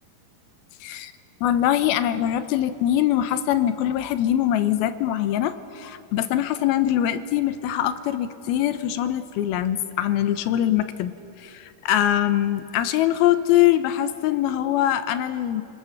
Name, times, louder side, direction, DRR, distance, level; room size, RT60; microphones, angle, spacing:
voice 1, 0.8-1.1 1.4-11.1 11.4-15.6, left 12 dB, 85° left, 11 dB, 2.7 m, -23 dB
26.0 x 21.0 x 7.0 m, 2.9 s
omnidirectional pair, 4.4 m